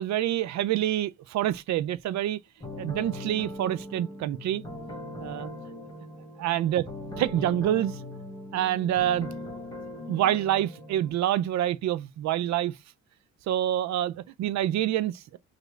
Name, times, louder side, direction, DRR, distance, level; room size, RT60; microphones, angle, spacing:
voice 1, 0.0-2.4 2.8-4.6 5.2-5.5 6.4-6.8 7.2-8.0 8.5-9.3 10.1-12.7 13.5-15.4, right 12 dB, 65° right, 0.4 m, -27 dB
sound 1, 2.6-11.1, left 1 dB, 15° left, 1.2 m, -40 dB
3.1 x 2.5 x 3.1 m
cardioid pair, 90°, 30 cm